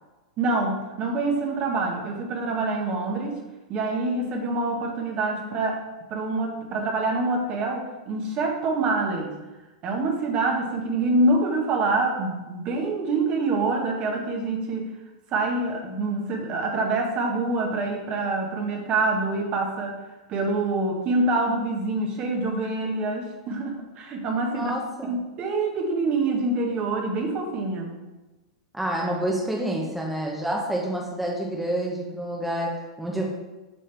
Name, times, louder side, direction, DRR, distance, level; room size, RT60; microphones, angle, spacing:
voice 1, 0.4-3.4 3.7-5.8 6.1-9.3 9.8-14.9 15.3-20.0 20.3-24.7 25.0-27.9, right 2 dB, 40° right, 1 dB, 1.5 m, -26 dB
voice 2, 24.5-25.2 28.7-33.2, right 1 dB, 5° right, -2 dB, 1.1 m, -28 dB
7.5 x 6.4 x 3.5 m, 1.1 s
hypercardioid pair, 120°, 3 cm